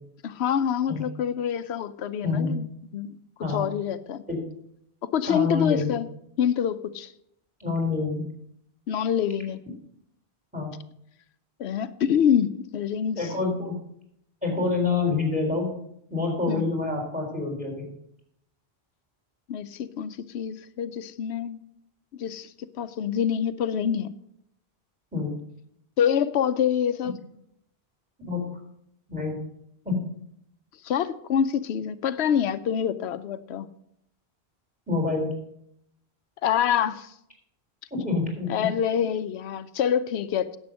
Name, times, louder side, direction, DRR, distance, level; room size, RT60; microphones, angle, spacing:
voice 1, 0.2-2.7 2.9-3.2 3.5-4.2 5.0-6.1 6.4-7.1 8.9-9.6 11.6-13.3 16.5-16.6 19.5-21.6 22.2-24.1 26.0-27.2 30.8-33.7 36.4-37.1 38.5-40.6, left 8 dB, 90° left, 12 dB, 0.9 m, -26 dB
voice 2, 5.3-5.9 7.6-8.3 10.5-10.7 13.2-13.8 14.4-15.7 16.1-17.9 25.1-25.3 28.2-28.4 29.1-29.4 29.8-30.1 34.9-35.3 37.9-38.7, left 3 dB, 5° right, 1 dB, 3.5 m, -27 dB
10.5 x 7.5 x 6.3 m, 0.74 s
omnidirectional pair, 1.1 m